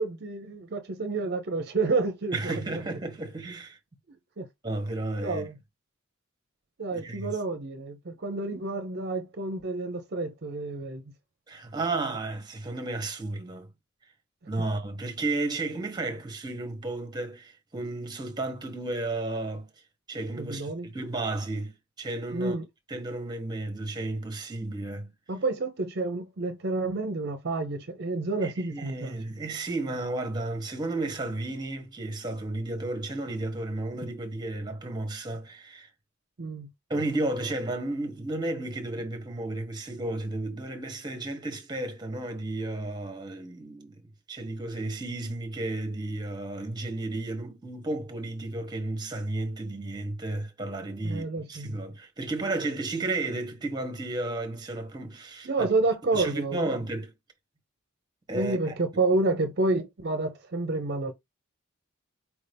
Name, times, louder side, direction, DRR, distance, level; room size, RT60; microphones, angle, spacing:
voice 1, 0.0-2.6 4.4-4.5 5.2-5.5 6.8-11.0 20.4-20.9 22.3-22.6 25.3-29.1 36.4-36.7 51.0-51.8 55.5-56.8 58.3-61.1, right 3 dB, 55° right, 0.6 m, -29 dB
voice 2, 2.3-3.8 4.6-5.5 6.9-7.3 11.5-13.7 14.5-19.7 20.1-22.6 22.9-25.1 28.4-35.9 36.9-44.0 44.3-55.7 56.1-57.1 58.3-58.6, right 2 dB, 20° right, 1.0 m, -33 dB
4.6 x 2.7 x 3.3 m
head